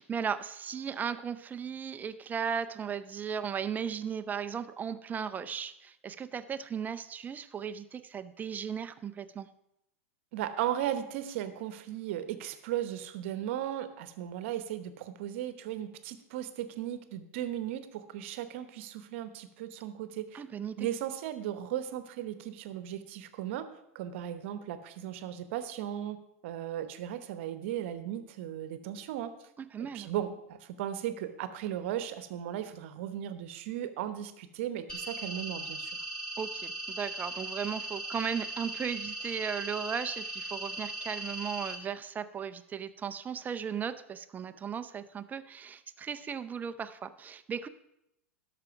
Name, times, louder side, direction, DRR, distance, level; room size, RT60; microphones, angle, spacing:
voice 1, 0.0-9.5 20.3-20.9 29.6-30.1 36.4-47.7, right 7 dB, 25° right, 12 dB, 0.6 m, -36 dB
voice 2, 10.3-20.4 20.8-23.7 23.9-26.2 26.4-29.3 29.9-36.0, right 11 dB, 60° right, 11 dB, 1.0 m, -36 dB
sound 1, 34.9-41.7, right 1 dB, 10° left, 3.0 m, -38 dB
13.0 x 5.9 x 5.8 m, 0.82 s
hypercardioid pair, 100°, 7 cm